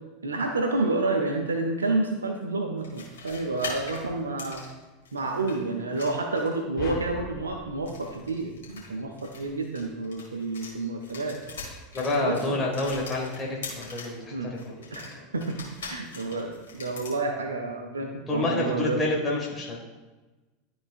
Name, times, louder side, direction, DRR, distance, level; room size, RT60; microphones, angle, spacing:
voice 1, 0.2-4.6 5.1-11.4 12.2-12.4 14.3-14.5 14.9-19.0, right 2 dB, 90° right, 3 dB, 0.6 m, -29 dB
sound 1, 2.8-5.6 5.9-6.7 7.7-10.7 11.0-14.2 14.6-17.2, left 4 dB, 80° left, 1.9 m, -42 dB
sound 2, 6.8-9.2, left 3 dB, 50° left, 1.0 m, -41 dB
voice 2, 11.9-15.0 18.3-19.8, left 2 dB, 20° left, -3 dB, 1.5 m, -28 dB
12.0 x 4.1 x 2.4 m, 1.2 s
hypercardioid pair, 85°, 0 cm